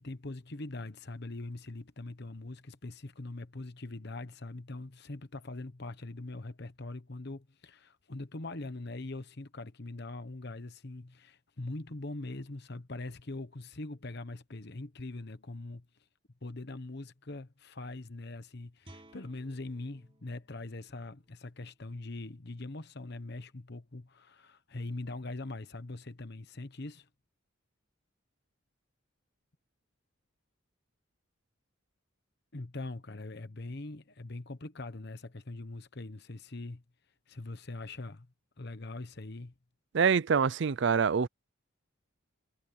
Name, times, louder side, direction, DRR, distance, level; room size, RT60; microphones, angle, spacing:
voice 1, 0.0-15.8 16.4-27.1 32.5-36.8 37.3-38.3 38.6-39.5, left 2 dB, 50° left, 1.1 m, -42 dB
Guitar, 18.8-24.4, right 1 dB, 25° right, 5.1 m, -62 dB
voice 2, 39.9-41.3, right 6 dB, 55° right, 0.4 m, -25 dB
head